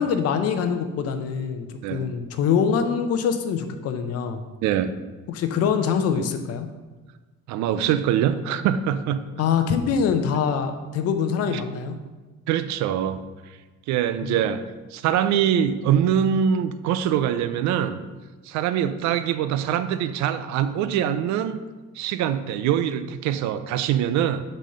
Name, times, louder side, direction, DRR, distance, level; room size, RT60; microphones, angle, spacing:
voice 1, 0.0-4.4 5.3-6.7 9.4-11.9 14.2-14.3, left 6 dB, 55° left, 8 dB, 0.7 m, -24 dB
voice 2, 4.6-4.9 7.5-9.2 11.5-11.6 12.5-13.2 13.9-14.6 14.9-18.0 18.4-21.6 21.9-24.4, right 9 dB, 70° right, 11 dB, 0.5 m, -23 dB
6.4 x 4.2 x 6.5 m, 1.3 s
cardioid pair, 165°, 30 cm